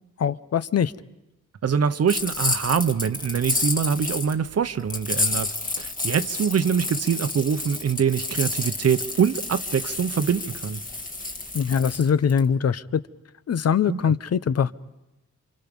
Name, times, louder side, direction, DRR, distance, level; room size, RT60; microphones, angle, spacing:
voice 1, 0.2-0.9 11.5-13.0 13.5-14.7, left 7 dB, 55° left, 14 dB, 0.8 m, -22 dB
voice 2, 1.6-10.8 13.9-14.2, right 7 dB, 55° right, 11 dB, 0.9 m, -24 dB
sound 1, 2.1-4.3 4.9-12.4, left 3 dB, 25° left, 1.8 m, -30 dB
29.0 x 26.5 x 5.4 m, 0.96 s
wide cardioid pair, 145°, 30 cm